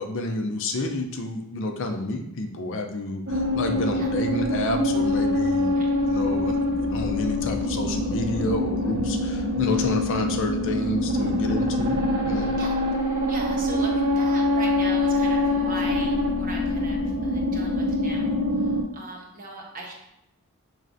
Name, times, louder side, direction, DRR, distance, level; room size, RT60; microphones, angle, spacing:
voice 1, 0.0-12.5, left 2 dB, 60° left, 4 dB, 0.5 m, -30 dB
sound 1, 3.3-18.8, left 1 dB, 55° right, 1.6 m, -24 dB
voice 2, 12.3-12.8 13.3-19.9, right 2 dB, 40° right, -1 dB, 1.0 m, -39 dB
6.1 x 3.2 x 2.6 m, 0.79 s
head